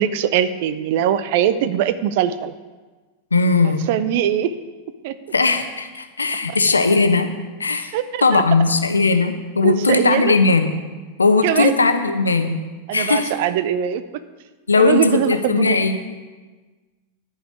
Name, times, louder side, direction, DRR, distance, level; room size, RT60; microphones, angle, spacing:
voice 1, 0.0-2.5 3.9-4.6 5.0-5.2 6.5-6.6 7.9-8.4 9.6-10.3 11.4-11.7 12.9-14.0 14.8-15.8, right 10 dB, 50° right, 13 dB, 0.6 m, -21 dB
voice 2, 3.3-3.8 5.3-7.3 7.6-7.9 8.2-10.8 11.2-12.6 12.9-13.3 14.7-16.0, left 4 dB, 75° left, 8 dB, 0.9 m, -18 dB
11.5 x 5.7 x 8.8 m, 1.3 s
figure-of-eight pair, 90°, 0 cm